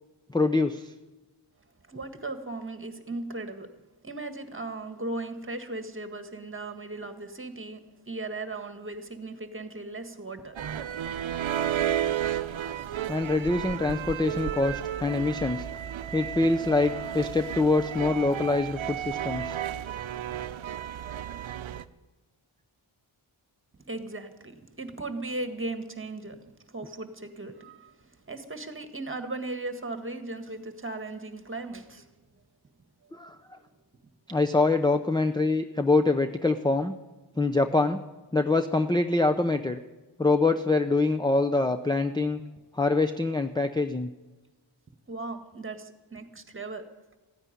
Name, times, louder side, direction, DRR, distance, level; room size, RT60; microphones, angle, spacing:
voice 1, 0.3-0.9 13.1-15.6 16.1-19.6 33.1-33.4 34.3-36.9 37.4-38.0 38.3-39.8 40.2-42.4 42.7-44.1, left 3 dB, 10° left, 7 dB, 0.6 m, -25 dB
voice 2, 1.9-3.7 4.0-11.1 23.9-32.1 33.0-33.1 33.5-33.7 45.1-46.9, right 2 dB, 25° right, 7 dB, 1.7 m, -37 dB
sound 1, 10.6-21.8, right 10 dB, 70° right, 0.8 m, -33 dB
15.0 x 9.7 x 9.7 m, 1.2 s
wide cardioid pair, 85°, 49 cm